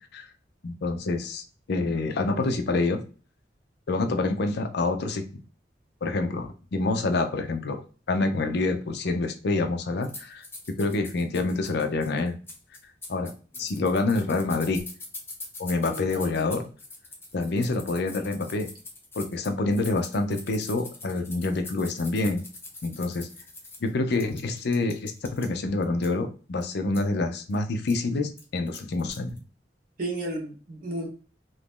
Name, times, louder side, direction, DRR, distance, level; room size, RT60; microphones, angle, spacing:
voice 1, 0.6-3.0 3.9-5.2 6.0-7.8 8.1-12.4 13.1-13.3 13.6-14.8 15.6-16.7 17.3-18.7 19.2-22.4 22.8-23.3 23.8-29.4, left 3 dB, 65° left, 6 dB, 0.5 m, -27 dB
sound 1, 10.0-25.5 25.8-26.1 26.6-26.7 26.9-27.0 27.5-27.6 27.9-28.0 28.4-29.4, left 2 dB, 15° left, 0.8 m, -43 dB
voice 2, 15.8-16.6 30.0-31.1, right 1 dB, 50° right, -1 dB, 1.2 m, -34 dB
2.9 x 2.6 x 3.5 m, 0.37 s
head